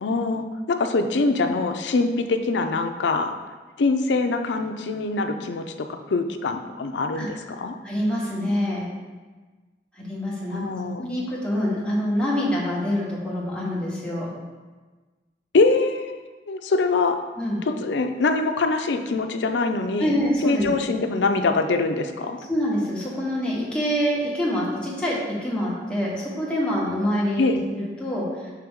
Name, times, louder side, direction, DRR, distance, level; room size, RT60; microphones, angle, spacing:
voice 1, 0.0-3.3 3.8-7.8 10.5-11.1 15.5-17.2 17.6-20.2 20.4-22.4 27.4-27.6, left 3 dB, 85° left, 7 dB, 0.5 m, -24 dB
voice 2, 7.8-8.9 9.9-10.6 11.0-14.3 17.4-17.6 20.0-20.7 22.5-28.5, equal, 5° left, -6 dB, 1.2 m, -26 dB
5.9 x 4.6 x 3.6 m, 1.3 s
head